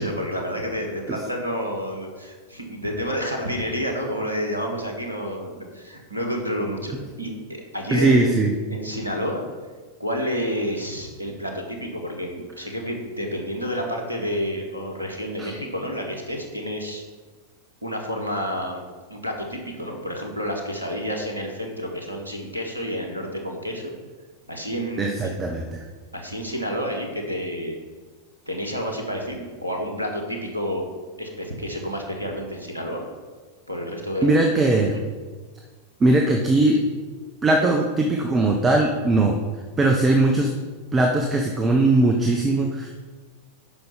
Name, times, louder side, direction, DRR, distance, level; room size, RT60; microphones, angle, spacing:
voice 1, 0.0-8.4 8.7-9.5 10.0-17.0 17.8-18.8 19.1-24.0 24.5-25.4 26.1-27.8 28.5-30.9 31.2-33.0 33.7-34.4 34.9-35.0, equal, 85° right, 2 dB, 1.6 m, -29 dB
voice 2, 7.9-8.5 15.4-15.5 25.0-25.8 34.2-35.0 36.0-36.8 37.4-39.4 39.8-40.5 40.9-42.9, right 2 dB, 20° right, 2 dB, 1.0 m, -20 dB
8.7 x 6.0 x 5.7 m, 1.4 s
figure-of-eight pair, 90°, 0 cm